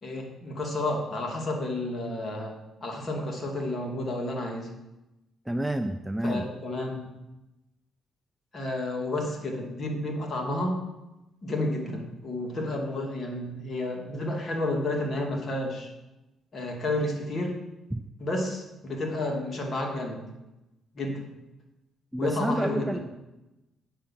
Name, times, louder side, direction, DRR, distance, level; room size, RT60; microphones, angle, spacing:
voice 1, 0.0-2.6 2.8-4.7 6.2-7.1 8.5-10.8 11.4-15.9 16.5-17.6 18.2-20.2 20.9-21.3 22.2-23.0, left 1 dB, 40° left, 1 dB, 2.4 m, -31 dB
voice 2, 5.5-6.4 17.9-18.0 22.1-23.0, right 1 dB, 5° right, 7 dB, 0.6 m, -29 dB
8.8 x 6.9 x 5.9 m, 0.97 s
cardioid pair, 90°, 0 cm